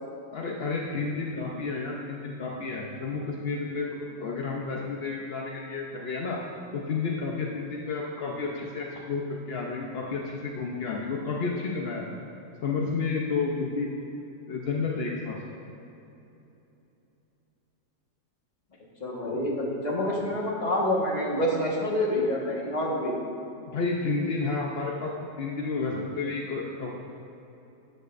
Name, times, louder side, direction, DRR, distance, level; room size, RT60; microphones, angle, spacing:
voice 1, 0.3-6.4 6.7-12.1 12.6-14.1 14.5-15.4 19.1-19.4 20.0-20.2 23.7-26.9, left 4 dB, 55° left, -2 dB, 0.7 m, -31 dB
voice 2, 19.0-23.2, left 1 dB, 25° left, -3 dB, 1.5 m, -27 dB
13.0 x 9.1 x 2.6 m, 3.0 s
omnidirectional pair, 1.9 m